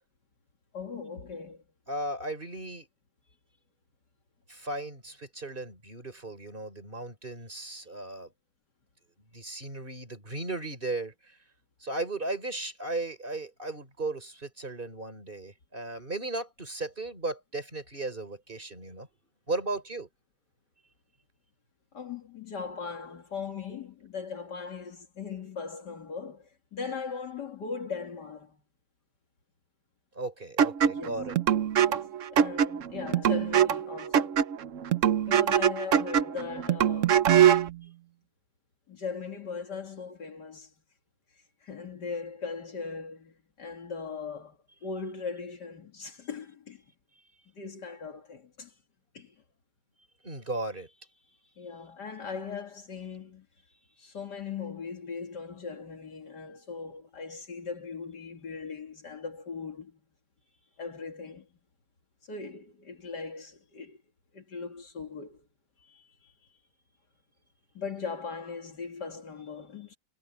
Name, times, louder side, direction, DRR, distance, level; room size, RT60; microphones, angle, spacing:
voice 1, 0.7-1.6 21.9-28.6 30.9-31.2 31.8-34.4 35.3-37.3 38.9-40.7 41.6-46.8 47.5-48.7 49.1-49.4 51.6-53.5 54.0-60.0 60.8-61.5 62.2-64.0 64.3-65.5 65.8-66.3 67.7-70.0, left 5 dB, 65° left, 2.6 m, -39 dB
voice 2, 1.9-2.9 4.5-8.3 9.3-11.4 11.8-19.1 19.5-20.1 30.1-31.4 50.2-50.9 51.3-51.4, right 2 dB, 25° right, 4.3 m, -36 dB
sound 1, 30.6-37.7, right 9 dB, 60° right, 0.9 m, -24 dB
omnidirectional pair, 2.0 m